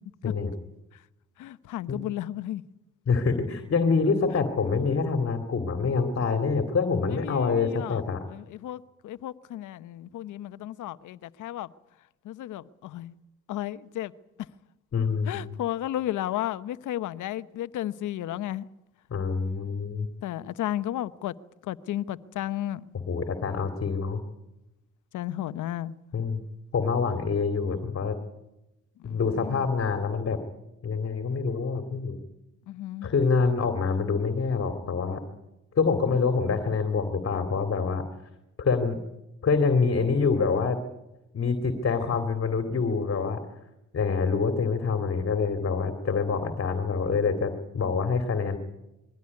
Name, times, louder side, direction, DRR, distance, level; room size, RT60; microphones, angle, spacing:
voice 1, 1.4-2.6 7.1-8.0 8.3-11.7 12.2-13.1 13.5-14.1 15.3-18.7 20.2-21.3 21.6-22.8 25.1-26.0 29.0-29.7 32.7-33.1, left 13 dB, 80° left, 1.0 m, -33 dB
voice 2, 3.1-8.2 14.9-15.5 19.1-20.1 23.1-24.2 26.1-26.4 26.7-28.2 29.0-30.4 30.8-32.2 33.0-35.2 35.7-38.0 38.6-39.0 39.4-40.8 41.3-43.4 43.9-48.6, left 5 dB, 45° left, 2.7 m, -26 dB
22.0 x 16.5 x 9.7 m
cardioid pair, 90°, 30 cm